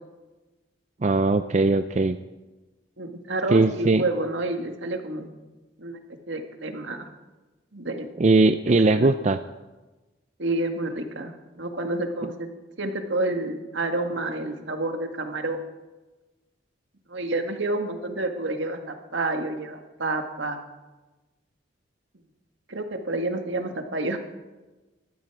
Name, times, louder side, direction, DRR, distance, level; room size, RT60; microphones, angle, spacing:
voice 1, 1.0-2.2 3.5-4.0 8.2-9.4, right 3 dB, 35° right, 10 dB, 0.4 m, -20 dB
voice 2, 3.0-5.3 5.8-6.0 6.3-7.1 7.7-8.1 8.9-9.1 10.4-12.5 12.8-15.6 17.1-20.6 22.7-24.2, right 2 dB, 75° right, 5 dB, 1.8 m, -29 dB
19.5 x 13.5 x 4.8 m, 1.2 s
head